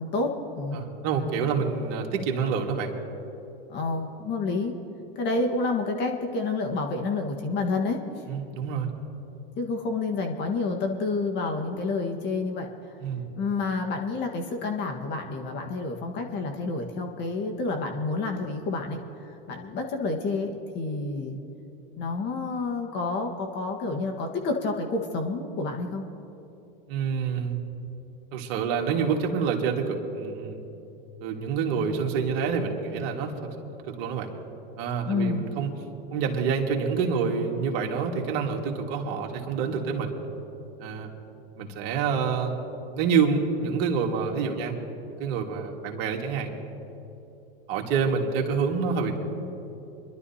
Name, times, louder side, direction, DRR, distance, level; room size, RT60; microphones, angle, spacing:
voice 1, 0.0-0.8 3.7-4.7 5.1-8.0 9.6-13.0 13.4-21.4 22.0-26.0 35.0-35.5, left 3 dB, 35° left, 3 dB, 1.6 m, -29 dB
voice 2, 0.7-2.9 8.3-8.9 13.0-13.3 26.9-27.6 28.3-30.6 31.2-33.5 33.9-34.3 34.8-35.7 36.1-40.1 40.8-41.1 41.6-42.7 43.0-44.7 45.2-46.5 47.7-49.2, right 6 dB, 50° right, 1 dB, 1.9 m, -27 dB
25.5 x 11.5 x 2.8 m, 2.9 s
hypercardioid pair, 115°, 29 cm